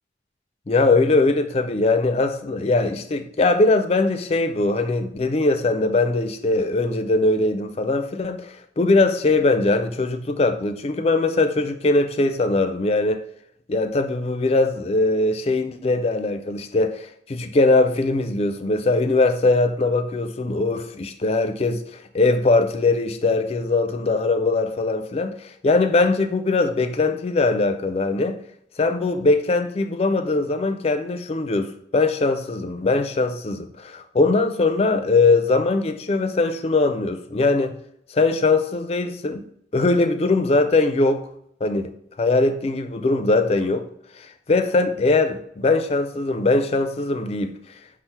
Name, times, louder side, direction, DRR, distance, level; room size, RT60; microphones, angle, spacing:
voice 1, 0.7-8.4 8.8-13.2 13.7-28.4 28.8-37.8 38.1-39.4 39.7-41.3 41.6-41.9 42.2-43.9 44.2-47.5, left 3 dB, 35° left, 0.4 m, -21 dB
5.5 x 2.0 x 4.5 m
head